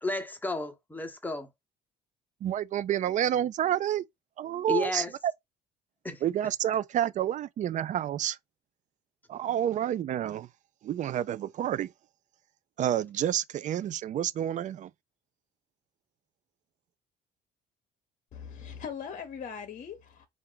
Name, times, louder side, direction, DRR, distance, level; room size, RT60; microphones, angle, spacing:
voice 1, 0.0-1.5 4.7-5.1 6.0-6.2, left 2 dB, 10° left, 0.9 m, -32 dB
voice 2, 2.4-4.1 4.4-5.3 6.2-8.4 9.3-10.5 10.8-11.9 12.8-14.9, right 11 dB, 50° right, 0.4 m, -29 dB
voice 3, 18.3-20.3, left 7 dB, 50° left, 0.8 m, -40 dB
4.3 x 2.5 x 3.8 m
cardioid pair, 110°, 17 cm